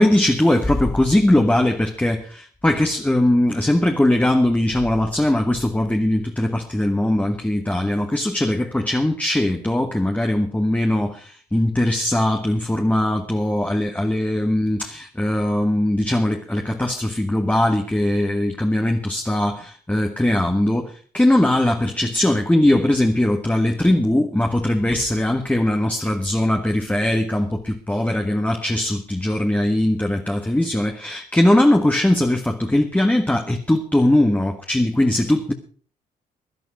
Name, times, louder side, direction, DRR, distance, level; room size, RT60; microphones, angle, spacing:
voice 1, 0.0-35.5, left 1 dB, 10° left, 1.6 m, -20 dB
17.0 x 11.0 x 4.9 m
supercardioid pair, 65°, 17 cm